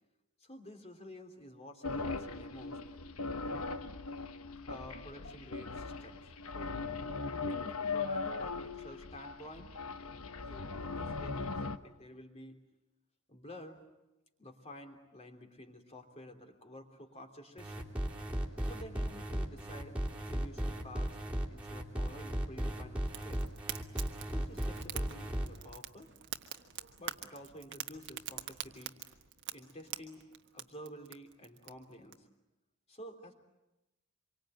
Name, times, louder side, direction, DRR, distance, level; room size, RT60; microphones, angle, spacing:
voice 1, 0.4-2.8 3.5-3.9 4.7-6.3 6.5-6.8 7.9-9.7 10.5-12.6 13.3-13.8 14.4-17.9 18.6-21.2 21.5-23.4 24.2-26.1 27.0-28.9 29.5-32.3 32.9-33.3, left 1 dB, 30° left, 4 dB, 3.2 m, -51 dB
sound 1, 1.8-11.8, left 4 dB, 70° left, 1.1 m, -39 dB
sound 2, 17.6-25.5, right 1 dB, 5° right, 3.0 m, -36 dB
Fire, 23.1-32.1, right 10 dB, 50° right, 1.4 m, -46 dB
26.5 x 24.0 x 9.1 m, 0.99 s
head